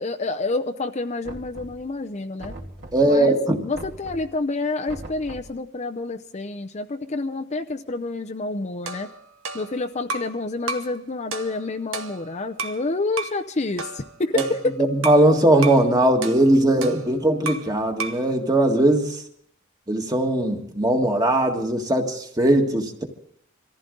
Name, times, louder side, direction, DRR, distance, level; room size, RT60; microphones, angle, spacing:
voice 1, 0.0-2.5 3.0-9.1 9.5-14.8, left 3 dB, 35° left, 5 dB, 0.6 m, -28 dB
Knock, 1.2-2.0 2.4-3.2 3.7-4.4 4.9-5.6, right 1 dB, 60° right, 2.6 m, -40 dB
voice 2, 2.9-3.6 14.3-14.4 14.9-19.2 19.9-23.0, right 1 dB, 20° right, 3 dB, 1.6 m, -19 dB
sound 1, 8.9-10.4 10.7-11.0 11.3-12.8 13.2-13.4 13.8-15.3 15.6-15.9 16.2-17.7 18.0-18.3, right 3 dB, 75° right, 1.2 m, -33 dB
24.5 x 14.5 x 3.8 m, 0.66 s
head